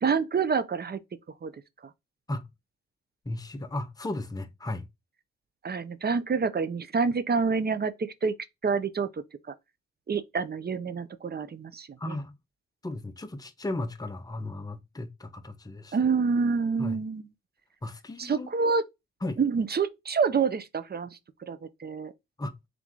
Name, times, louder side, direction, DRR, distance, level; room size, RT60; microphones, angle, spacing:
voice 1, 0.0-1.0 1.4-1.5 1.8-1.9 5.6-8.3 8.6-9.5 10.1-12.2 15.9-17.3 18.2-18.9 19.4-22.1, right 5 dB, 35° right, 0.6 m, -27 dB
voice 2, 3.2-4.9 12.0-12.4 12.8-16.0 16.8-17.0 17.8-18.5 19.2-19.4 22.4-22.5, left 2 dB, 10° left, 0.8 m, -35 dB
3.7 x 3.0 x 3.7 m
supercardioid pair, 55°, 30 cm